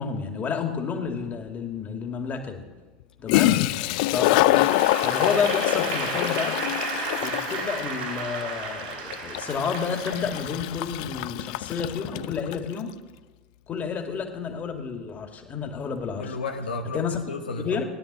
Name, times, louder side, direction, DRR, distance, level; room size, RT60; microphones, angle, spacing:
voice 1, 0.0-2.6 3.2-3.6 4.1-4.6 5.0-6.6 7.2-12.9 13.7-16.3 16.9-17.2 17.6-17.8, left 6 dB, 35° left, 4 dB, 2.4 m, -30 dB
Toilet flush, 1.3-1.4 3.0-3.1 3.3-12.7, left 17 dB, 65° left, 0.4 m, -25 dB
voice 2, 3.3-4.0 16.2-17.8, left 3 dB, 85° left, 4 dB, 0.9 m, -33 dB
Applause / Crowd, 4.5-10.9, right 4 dB, 75° right, 4.6 m, -33 dB
17.0 x 10.0 x 7.6 m, 1.3 s
hypercardioid pair, 80°, 5 cm